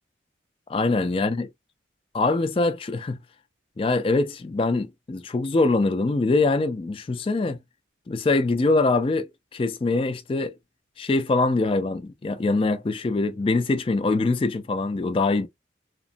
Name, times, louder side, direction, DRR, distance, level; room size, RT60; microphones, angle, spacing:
voice 1, 0.7-1.5 2.1-3.2 3.8-7.6 8.1-10.5 11.0-15.5, left 3 dB, 30° left, 0.3 m, -23 dB
2.9 x 2.0 x 2.5 m
head